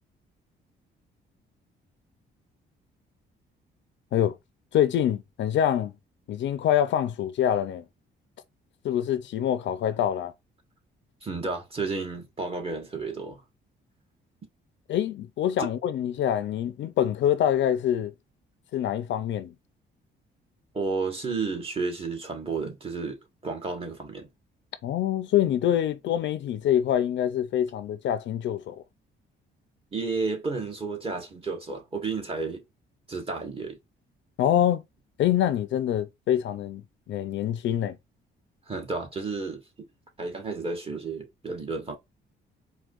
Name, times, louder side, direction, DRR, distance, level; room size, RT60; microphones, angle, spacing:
voice 1, 4.7-5.9 6.3-7.8 8.8-10.3 14.9-18.1 18.7-19.5 24.8-28.8 34.4-34.8 35.2-38.0, left 10 dB, 70° left, 0.5 m, -25 dB
voice 2, 11.2-13.4 15.6-15.7 20.7-24.3 29.9-32.6 33.1-33.8 38.7-39.6 40.2-42.0, right 4 dB, 30° right, 1.3 m, -32 dB
4.6 x 2.3 x 2.4 m
cardioid pair, 90°, 20 cm